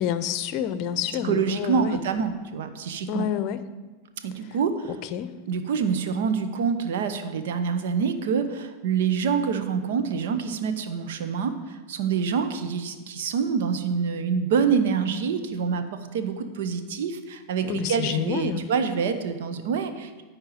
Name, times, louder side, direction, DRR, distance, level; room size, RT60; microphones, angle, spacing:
voice 1, 0.0-2.0 3.1-3.6 5.1-5.3 17.6-18.7, left 10 dB, 50° left, 13 dB, 0.6 m, -28 dB
voice 2, 1.1-3.3 4.2-4.9 5.5-20.2, right 6 dB, 70° right, 9 dB, 0.9 m, -26 dB
10.5 x 4.5 x 7.9 m, 1.3 s
hypercardioid pair, 95°, 0 cm